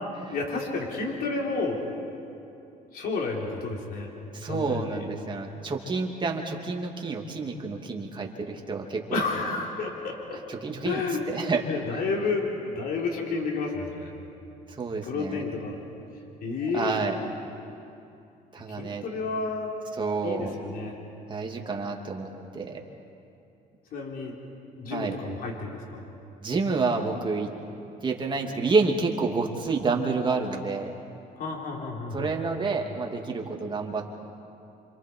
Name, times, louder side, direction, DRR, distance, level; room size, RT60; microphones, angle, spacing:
voice 1, 0.3-1.8 2.9-4.1 4.4-5.0 9.1-10.4 10.8-11.2 11.7-14.1 15.0-15.8 16.4-16.9 18.7-19.7 20.2-20.9 23.9-24.4 24.7-26.1 31.4-32.3, left 4 dB, 60° left, -1 dB, 4.0 m, -31 dB
voice 2, 4.3-9.3 10.5-11.6 14.8-15.4 16.6-17.1 18.5-19.0 20.0-20.5 21.3-22.8 24.9-25.2 26.4-27.5 28.0-30.9 32.1-34.1, right 4 dB, 30° right, 1 dB, 2.6 m, -29 dB
28.0 x 26.5 x 4.7 m, 2.7 s
cardioid pair, 110°, 17 cm